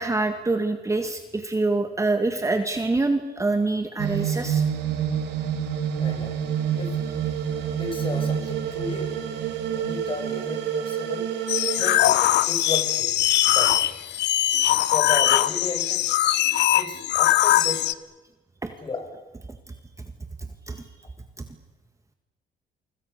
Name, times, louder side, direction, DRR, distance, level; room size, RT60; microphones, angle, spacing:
voice 1, 0.0-4.6 7.0-7.1 18.6-18.7 19.7-19.8 20.7-20.9, right 3 dB, 15° right, 6 dB, 1.9 m, -25 dB
sound 1, 4.0-12.0, right 8 dB, 85° right, 2.9 m, -27 dB
voice 2, 6.0-6.5 6.7-7.0 7.8-9.2 9.7-11.3 11.7-13.9 14.9-16.2 16.7-17.9 18.8-19.1, left 3 dB, 30° left, 5 dB, 5.9 m, -34 dB
sound 2, 11.5-17.9, left 14 dB, 85° left, 1.0 m, -21 dB
29.5 x 25.0 x 6.7 m, 1.1 s
cardioid pair, 125°, 17 cm